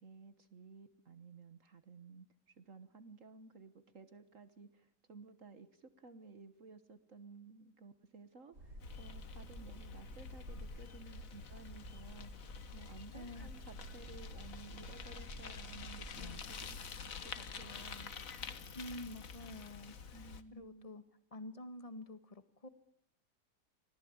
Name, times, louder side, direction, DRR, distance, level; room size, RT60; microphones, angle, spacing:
voice 1, 0.0-12.3 12.7-16.8 17.2-18.1 20.1-20.9, right 4 dB, 50° right, 12 dB, 1.6 m, -56 dB
sound 1, 8.5-16.8, right 1 dB, 85° right, 6.6 m, -51 dB
Bicycle, 8.8-20.4, left 5 dB, 55° left, 1.8 m, -48 dB
voice 2, 13.1-13.5 18.7-20.1 20.5-21.0 21.3-22.7, left 1 dB, 20° left, 11 dB, 1.7 m, -48 dB
25.5 x 18.5 x 8.7 m, 0.72 s
omnidirectional pair, 1.8 m